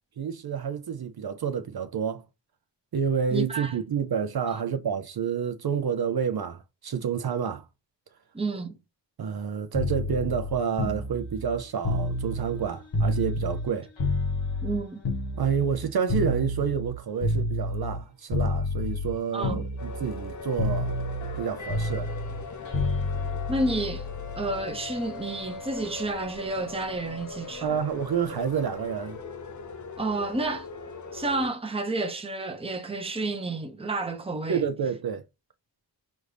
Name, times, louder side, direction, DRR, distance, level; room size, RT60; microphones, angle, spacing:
voice 1, 0.2-2.2 2.9-7.7 9.2-13.9 15.4-21.0 21.4-22.1 27.6-29.2 34.5-35.2, right 7 dB, 55° right, 0.6 m, -29 dB
voice 2, 3.3-3.7 4.5-4.6 8.3-8.8 14.6-15.0 19.3-19.6 23.5-24.1 24.4-27.8 30.0-30.7 31.1-34.6, right 2 dB, 15° right, 0.7 m, -30 dB
sound 1, 9.7-13.7 14.0-18.0 18.3-19.2 19.4-20.3 20.6-24.6 25.8-26.0, left 2 dB, 85° left, 1.4 m, -29 dB
sound 2, 19.8-31.5, left 4 dB, 40° left, 0.6 m, -40 dB
6.2 x 2.6 x 3.3 m
wide cardioid pair, 140°, 44 cm